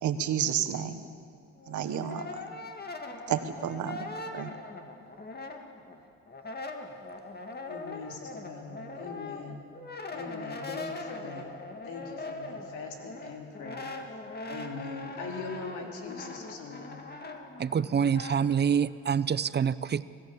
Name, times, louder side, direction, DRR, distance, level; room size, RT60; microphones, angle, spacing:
voice 1, 0.0-1.0 1.7-2.3 3.3-4.5, right 9 dB, 75° right, 9 dB, 1.5 m, -31 dB
Brass instrument, 1.6-6.0 6.3-18.4, left 2 dB, 30° left, 2.2 m, -41 dB
voice 2, 7.6-9.6 10.1-11.5 11.8-14.1 14.5-17.0, left 4 dB, 90° left, 2 dB, 3.2 m, -41 dB
voice 3, 17.6-20.0, right 7 dB, 35° right, 17 dB, 0.6 m, -26 dB
25.0 x 16.0 x 7.2 m, 2.3 s
cardioid pair, 90°, 30 cm